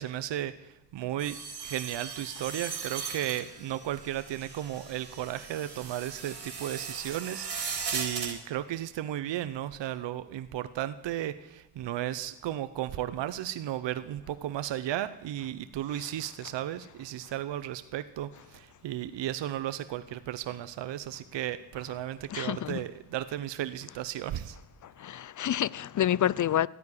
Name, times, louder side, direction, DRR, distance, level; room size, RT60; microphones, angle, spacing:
voice 1, 0.0-1.4 1.6-24.6, right 12 dB, 70° right, 0.8 m, -34 dB
sound 1, 1.2-8.3, right 5 dB, 55° right, 3.6 m, -38 dB
voice 2, 22.3-22.8 25.0-26.7, left 11 dB, 45° left, 0.5 m, -28 dB
13.5 x 9.5 x 9.8 m
supercardioid pair, 55°, 45 cm